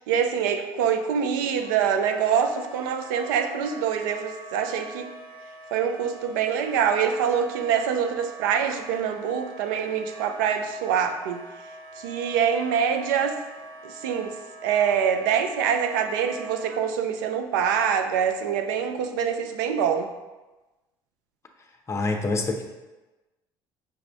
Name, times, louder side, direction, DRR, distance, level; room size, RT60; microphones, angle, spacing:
voice 1, 0.1-5.1 5.7-11.4 12.0-13.4 13.8-14.3 14.6-20.1, right 7 dB, 90° right, 7 dB, 0.4 m, -25 dB
Wind instrument woodwind instrument, 1.5-16.8, right 2 dB, 50° right, 0.7 m, -43 dB
voice 2, 21.9-22.6, left 3 dB, 25° left, 4 dB, 0.7 m, -26 dB
5.8 x 2.5 x 3.3 m, 1.1 s
supercardioid pair, 80°, 10 cm